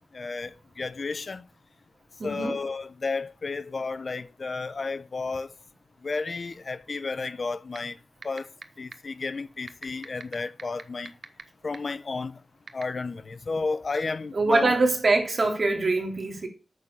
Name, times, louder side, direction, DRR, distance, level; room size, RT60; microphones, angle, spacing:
voice 1, 0.1-1.4 2.2-5.5 6.0-8.0 8.2-8.5 8.8-11.1 11.6-12.4 12.7-14.7, left 4 dB, 55° left, 0.8 m, -32 dB
voice 2, 2.2-2.6 14.3-16.5, right 3 dB, 55° right, 3.3 m, -24 dB
sound 1, 7.7-7.8 8.2-8.6 8.9-9.0 9.7-11.4 11.7-11.8 12.7-12.8, right 5 dB, 75° right, 1.1 m, -38 dB
8.8 x 6.8 x 7.1 m
wide cardioid pair, 105°, 0 cm